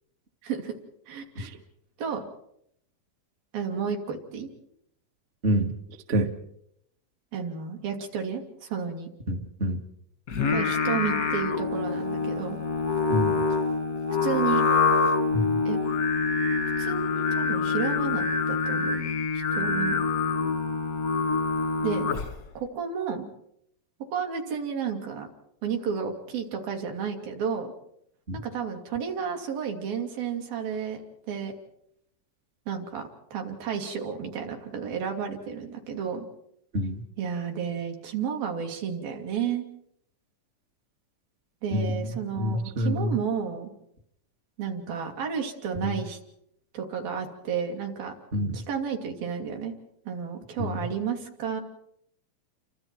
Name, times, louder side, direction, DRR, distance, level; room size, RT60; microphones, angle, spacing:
voice 1, 0.4-0.7 1.1-1.5 2.0-2.2 3.5-4.5 7.3-9.1 10.5-12.6 14.2-14.7 15.7-15.8 16.8-19.0 19.3-20.0 21.8-22.1 22.6-23.2 24.1-25.3 25.6-27.7 28.4-31.0 31.3-31.5 32.7-36.2 37.2-39.6 41.6-43.7 44.6-46.2 46.7-48.1 48.5-49.7 50.1-51.6, right 7 dB, 80° right, 2 dB, 4.5 m, -32 dB
voice 2, 5.4-5.7 6.1-6.3 9.3-9.8 13.1-13.4 15.3-15.6 28.3-28.4 36.7-37.0 41.7-42.0 42.3-43.2 45.8-46.0 48.3-48.6 50.6-50.9, equal, 50° right, 4 dB, 0.7 m, -27 dB
Singing, 10.3-22.5, left 4 dB, 55° left, 0.9 m, -26 dB
30.0 x 25.0 x 4.5 m, 0.74 s
omnidirectional pair, 4.0 m